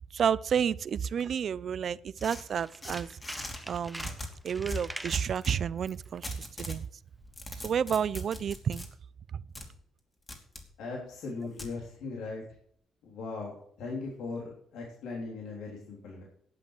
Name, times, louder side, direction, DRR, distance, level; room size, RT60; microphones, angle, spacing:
voice 1, 0.1-3.1 3.7-4.1 4.4-6.9 7.6-8.9 9.3-9.4, right 8 dB, 55° right, 0.5 m, -30 dB
sound 1, 2.2-3.6 4.0-5.6 6.2-6.8 7.2-8.9 9.6-9.7 10.3-10.7 11.6-11.7, left 1 dB, 25° left, 2.8 m, -41 dB
Tools, 2.5-5.3 5.8-6.1 6.4-6.5, right 1 dB, 5° right, 1.0 m, -44 dB
voice 2, 10.8-12.4 13.0-16.2, left 3 dB, 85° left, 3.1 m, -39 dB
11.5 x 7.7 x 6.4 m
cardioid pair, 90°, 0 cm